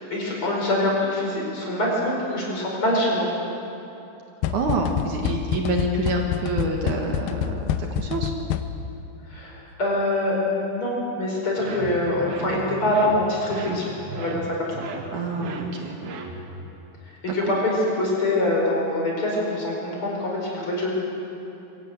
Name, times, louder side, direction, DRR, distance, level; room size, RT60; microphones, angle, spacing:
voice 1, 0.1-3.3 9.3-9.5 9.8-14.8 17.3-20.9, left 1 dB, 35° left, -3 dB, 5.4 m, -24 dB
sound 1, 4.4-9.0, left 9 dB, 90° left, 2.5 m, -27 dB
voice 2, 4.5-8.3 15.1-16.0, right 2 dB, 65° right, 2 dB, 2.7 m, -27 dB
sound 2, 11.6-16.7, right 4 dB, 85° right, 3.3 m, -35 dB
23.5 x 16.5 x 7.9 m, 3.0 s
omnidirectional pair, 4.1 m